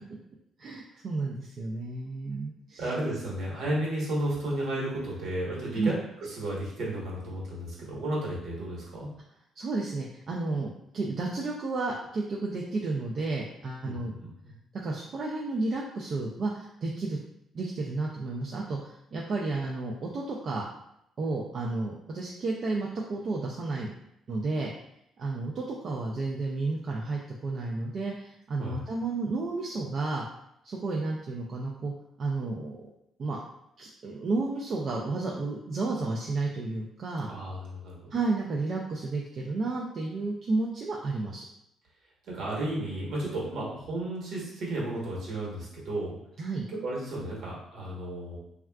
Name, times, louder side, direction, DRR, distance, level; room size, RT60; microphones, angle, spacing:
voice 1, 0.6-2.8 5.7-5.9 9.6-14.1 14.8-17.2 17.5-20.6 21.2-23.9 24.3-24.7 25.2-30.3 30.6-31.9 32.2-32.8 33.2-33.4 33.8-37.3 38.1-41.5 46.4-46.6, right 3 dB, 45° right, -3 dB, 0.3 m, -32 dB
voice 2, 2.8-9.1 13.8-14.5 28.6-28.8 37.3-38.2 42.3-46.2 46.7-48.4, right 1 dB, 65° right, -4 dB, 1.1 m, -33 dB
3.4 x 2.3 x 2.3 m, 0.78 s
cardioid pair, 140°, 0 cm